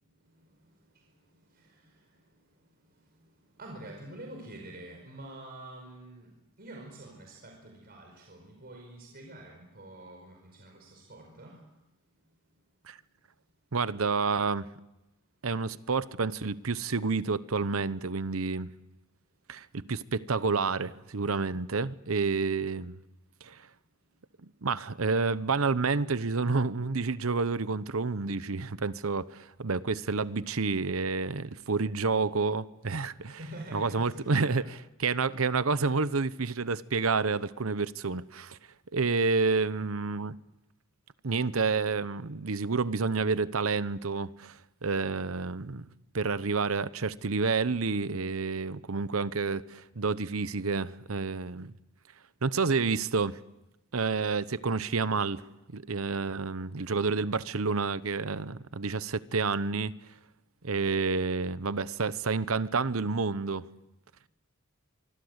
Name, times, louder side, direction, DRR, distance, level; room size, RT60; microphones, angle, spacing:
voice 1, 0.9-2.2 2.9-3.1 3.5-6.3 6.6-11.6 33.1-34.6, right 1 dB, 50° right, 5.2 m, -47 dB
voice 2, 13.7-14.7 15.4-18.7 19.5-23.0 23.4-23.6 24.6-33.4 33.7-34.6 35.0-38.6 38.9-40.4 41.2-45.9 46.1-51.7 52.4-53.4 53.9-55.4 55.7-59.9 60.6-63.7, right 4 dB, 85° right, 0.9 m, -29 dB
25.5 x 25.0 x 8.1 m
head